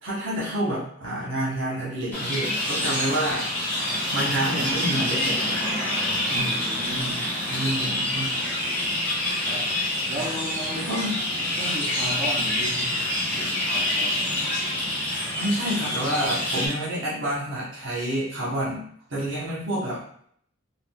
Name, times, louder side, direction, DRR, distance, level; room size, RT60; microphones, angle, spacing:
voice 1, 0.0-3.5 4.1-5.7 7.5-8.3 10.7-11.1 15.3-18.8 19.1-20.0, right 1 dB, 75° right, -7 dB, 1.0 m, -28 dB
sound 1, 2.1-16.7, left 1 dB, 10° left, 0.9 m, -27 dB
voice 2, 6.3-7.2 9.4-9.7 10.1-10.9 11.6-13.0 13.3-14.5, right 1 dB, 25° right, -9 dB, 0.5 m, -35 dB
3.6 x 2.2 x 2.2 m, 0.62 s
head